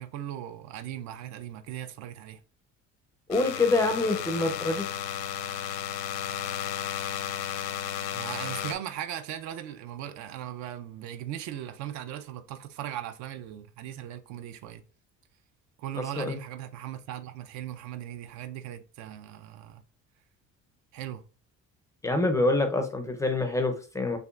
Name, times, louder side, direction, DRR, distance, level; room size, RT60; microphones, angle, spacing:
voice 1, 0.0-2.4 8.1-14.8 15.8-19.8 20.9-21.2, right 11 dB, 75° right, 0.6 m, -38 dB
sound 1, 3.3-8.7, left 9 dB, 85° left, 0.8 m, -33 dB
voice 2, 3.3-4.9 16.0-16.3 22.0-24.2, left 2 dB, 10° left, 0.4 m, -26 dB
6.7 x 2.5 x 2.4 m
cardioid pair, 175°, 29 cm